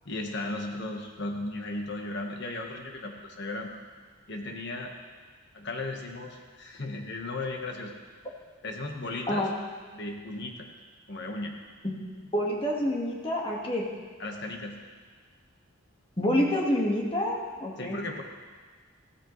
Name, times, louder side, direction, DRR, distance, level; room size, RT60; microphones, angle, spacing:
voice 1, 0.0-3.7 4.3-4.9 5.5-7.9 8.6-9.5 9.9-10.7 11.1-11.5 14.2-14.8 17.8-18.2, left 2 dB, 50° left, 2 dB, 1.4 m, -35 dB
voice 2, 12.3-13.8 16.2-18.0, left 1 dB, 25° left, -2 dB, 1.7 m, -27 dB
15.0 x 13.5 x 3.2 m, 1.5 s
head